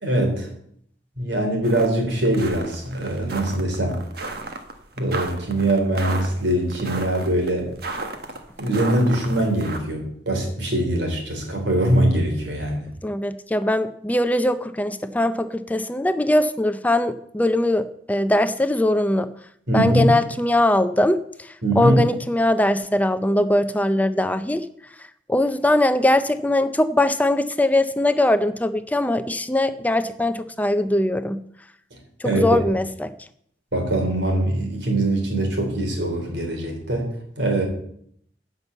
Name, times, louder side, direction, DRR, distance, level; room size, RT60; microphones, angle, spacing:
voice 1, 0.0-0.5 1.2-4.0 5.0-7.7 8.6-12.9 19.7-20.1 21.6-22.0 32.2-32.6 33.7-37.6, right 1 dB, 85° right, 2 dB, 3.7 m, -22 dB
sound 1, 1.6-1.9 2.2-9.8, right 2 dB, 60° right, 1.5 m, -33 dB
voice 2, 13.0-19.3 19.7-24.7 25.3-31.4 32.2-33.1, left 1 dB, 10° left, 10 dB, 0.5 m, -21 dB
11.0 x 6.1 x 8.1 m, 0.67 s
head